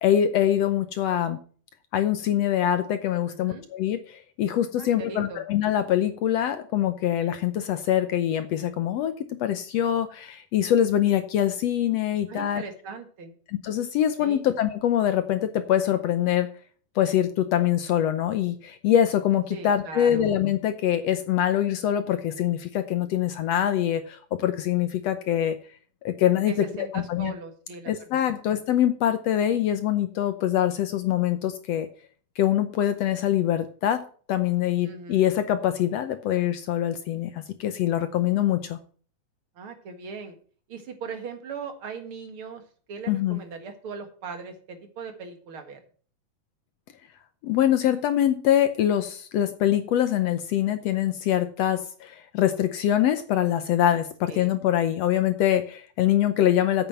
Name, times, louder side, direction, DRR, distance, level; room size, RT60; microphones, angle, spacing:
voice 1, 0.0-1.4 1.9-9.1 9.4-12.6 13.5-16.5 17.0-25.6 26.0-26.6 26.9-27.3 27.9-31.9 32.4-34.0 34.3-38.8 43.1-43.4 47.4-56.9, left 11 dB, 70° left, 9 dB, 1.6 m, -24 dB
voice 2, 3.3-3.7 4.8-5.4 12.3-13.3 14.2-14.4 19.5-20.3 26.5-27.9 28.2-28.4 34.8-35.3 39.6-40.3 40.7-42.6 42.9-45.8 54.3-54.5, right 5 dB, 50° right, 6 dB, 2.3 m, -39 dB
9.0 x 8.5 x 5.5 m, 0.43 s
omnidirectional pair, 3.6 m